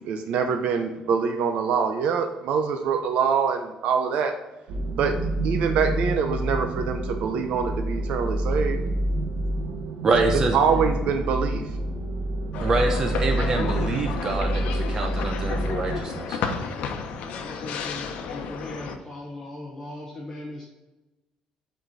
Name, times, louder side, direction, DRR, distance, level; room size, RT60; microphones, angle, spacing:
voice 1, 0.0-4.3 4.9-5.2 5.4-8.8 10.1-10.2 10.5-11.8, right 6 dB, 65° right, 5 dB, 0.7 m, -24 dB
sound 1, 4.7-16.0, right 1 dB, 90° right, 1.2 m, -28 dB
voice 2, 10.0-10.6 12.6-16.4, right 3 dB, 25° right, 3 dB, 0.7 m, -26 dB
sound 2, 12.5-19.0, left 6 dB, 80° left, 0.9 m, -32 dB
voice 3, 17.2-20.7, left 2 dB, 15° left, -3 dB, 1.0 m, -38 dB
7.9 x 4.3 x 4.0 m, 1.0 s
cardioid pair, 180°, 2 cm